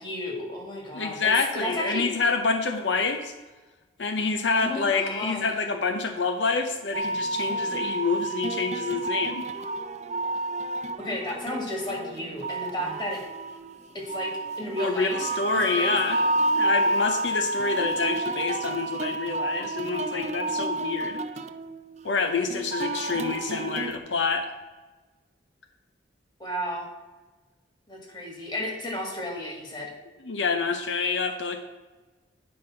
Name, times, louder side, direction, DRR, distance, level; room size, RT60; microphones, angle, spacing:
voice 1, 0.0-2.0 4.5-5.5 11.0-13.2 13.9-14.3 14.6-15.2 15.8-16.2 26.4-26.9 27.9-29.9, left 1 dB, 25° left, -1 dB, 2.2 m, -33 dB
voice 2, 0.9-3.3 4.0-9.4 14.8-16.2 16.5-21.2 22.0-24.5 30.2-31.6, left 4 dB, 80° left, 6 dB, 0.8 m, -27 dB
sound 1, 6.9-24.0, right 2 dB, 40° right, 0.5 m, -30 dB
9.8 x 5.3 x 5.7 m, 1.2 s
head